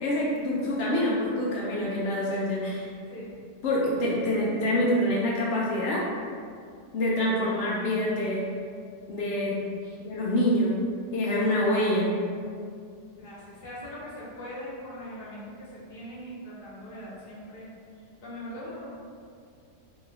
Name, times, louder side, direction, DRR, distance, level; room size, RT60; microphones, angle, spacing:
voice 1, 0.0-2.9 3.6-6.1 6.9-8.4 9.1-9.6 10.0-10.7 11.1-12.1, left 1 dB, 80° left, -5 dB, 0.6 m, -26 dB
voice 2, 13.2-17.7 18.2-18.9, equal, 40° left, -7 dB, 0.9 m, -41 dB
3.0 x 2.6 x 3.8 m, 2.3 s
omnidirectional pair, 1.7 m